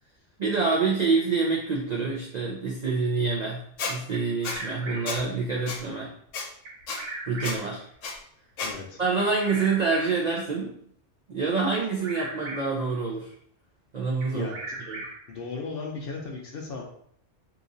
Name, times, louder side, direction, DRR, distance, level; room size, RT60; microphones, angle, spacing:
voice 1, 0.4-6.1 7.3-7.9 9.0-10.8 11.3-13.3 13.9-14.5 14.9-15.1, right 4 dB, 60° right, -2 dB, 0.4 m, -27 dB
Squeak, 3.8-3.9 4.4-4.6 5.1-5.2 5.7-5.8 6.3-6.4 6.9-7.0 7.4-7.6 8.0-8.1 8.6-8.7, left 4 dB, 85° left, 1.1 m, -31 dB
Bird vocalization bird call bird song, 4.1-5.3 6.7-7.8 9.2-10.4 11.7-12.9 14.2-15.4, right 2 dB, 80° right, 1.0 m, -39 dB
voice 2, 8.6-9.0 14.3-14.7 15.3-16.8, left 4 dB, 60° left, 0 dB, 0.7 m, -36 dB
2.9 x 2.4 x 3.8 m, 0.65 s
omnidirectional pair, 1.3 m